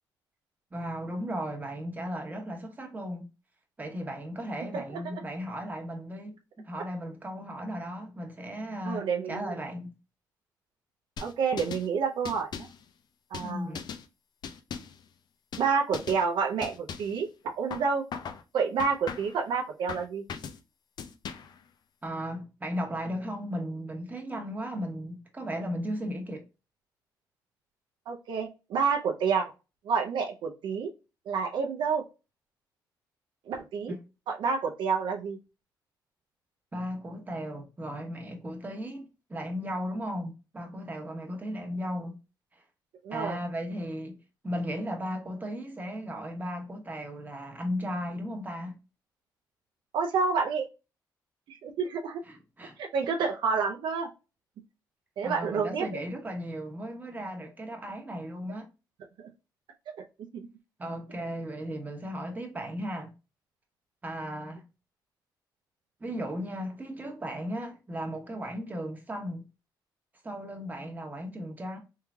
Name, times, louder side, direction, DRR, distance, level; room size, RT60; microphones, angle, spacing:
voice 1, 0.7-3.3 3.8-9.9 13.4-13.8 22.0-26.4 33.9-34.0 36.7-42.2 42.5-42.6 43.1-44.1 44.4-48.8 52.3-52.8 55.2-58.7 60.8-63.1 64.0-64.7 66.0-69.4 70.2-71.8, equal, 20° right, 1.1 m, -36 dB
voice 2, 4.7-5.2 8.8-9.6 11.2-12.7 13.3-13.7 15.6-18.0 18.5-20.2 28.1-29.5 29.8-30.9 31.3-32.0 33.5-33.9 34.3-35.4 43.0-43.4 49.9-50.7 51.5-52.2 52.8-54.1 55.2-56.0 59.2-59.3 60.3-60.4, right 5 dB, 80° right, 0.5 m, -29 dB
sound 1, 11.2-11.9 12.3-12.8 13.3-14.1 14.4-15.0 15.5-15.7 15.9-16.2 16.6-17.2 17.7-18.4 18.8-19.4 19.9-20.6 21.0-21.6, left 6 dB, 60° left, 0.5 m, -39 dB
3.6 x 3.1 x 2.3 m
cardioid pair, 85°, 8 cm